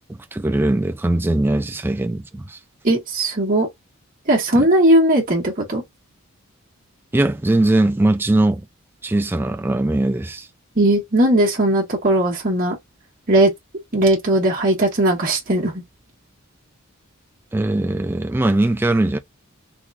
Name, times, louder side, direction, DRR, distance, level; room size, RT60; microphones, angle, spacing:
voice 1, 0.0-2.6 4.6-4.7 7.1-8.7 9.0-10.5 17.5-19.2, right 1 dB, 10° right, 0.3 m, -20 dB
voice 2, 2.8-3.7 4.3-5.8 10.8-12.8 13.3-13.5 13.9-15.8, right 1 dB, 40° right, 1.3 m, -18 dB
3.7 x 3.0 x 2.4 m
head